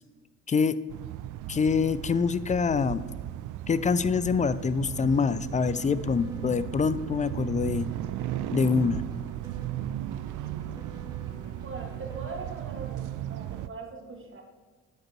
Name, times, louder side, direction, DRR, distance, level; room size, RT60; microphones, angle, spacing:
sound 1, 0.9-13.7, right 13 dB, 65° right, 0.5 m, -36 dB
voice 1, 1.5-3.0 3.7-7.9 8.5-9.0, left 5 dB, 20° left, 15 dB, 0.4 m, -25 dB
sound 2, 5.0-12.6, equal, 10° right, 2.1 m, -49 dB
voice 2, 11.6-14.4, right 3 dB, 35° right, 1 dB, 2.1 m, -41 dB
9.0 x 5.1 x 4.5 m, 1.4 s
hypercardioid pair, 60°, 34 cm